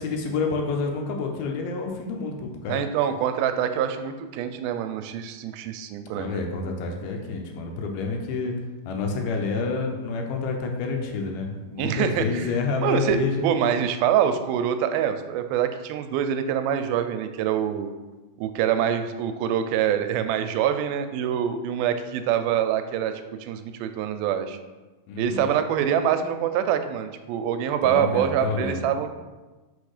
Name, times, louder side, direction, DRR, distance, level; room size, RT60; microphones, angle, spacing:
voice 1, 0.0-2.8 6.2-8.5 8.9-13.5 25.1-25.5 27.8-28.8, left 4 dB, 85° left, 2 dB, 2.6 m, -28 dB
voice 2, 2.7-6.5 11.8-12.5 12.8-17.9 18.4-23.1 23.4-24.6 25.2-29.1, right 9 dB, 90° right, 8 dB, 2.4 m, -25 dB
5.5 x 4.3 x 4.9 m, 1.2 s
omnidirectional pair, 4.2 m